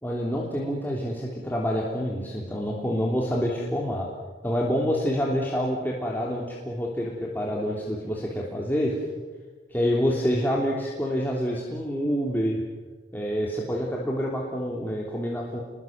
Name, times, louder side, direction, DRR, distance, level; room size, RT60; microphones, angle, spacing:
voice 1, 0.0-4.1 4.4-8.9 9.7-12.6 13.1-15.6, equal, 10° left, -3 dB, 3.1 m, -27 dB
30.0 x 22.0 x 7.4 m, 1.3 s
head